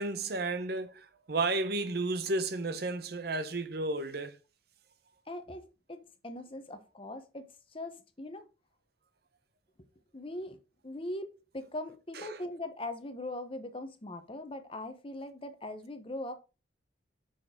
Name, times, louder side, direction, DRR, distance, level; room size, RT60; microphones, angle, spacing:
voice 1, 0.0-4.4 12.1-12.4, right 2 dB, 55° right, 0.7 m, -33 dB
voice 2, 5.3-5.6 5.9-8.4 10.1-10.6 10.8-16.3, left 1 dB, 30° left, 0.9 m, -41 dB
6.0 x 4.8 x 5.0 m
head